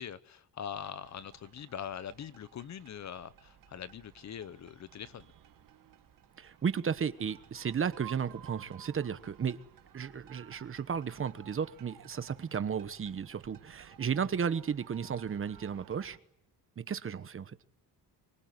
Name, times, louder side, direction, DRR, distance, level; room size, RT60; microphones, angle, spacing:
voice 1, 0.0-5.3, left 8 dB, 45° left, 16 dB, 1.0 m, -42 dB
sound 1, 0.8-16.2, right 11 dB, 60° right, 2.0 m, -56 dB
voice 2, 6.4-9.6 9.9-16.2 16.8-17.6, right 7 dB, 35° right, 12 dB, 1.1 m, -34 dB
25.5 x 23.5 x 9.6 m, 0.77 s
cardioid pair, 140°, 38 cm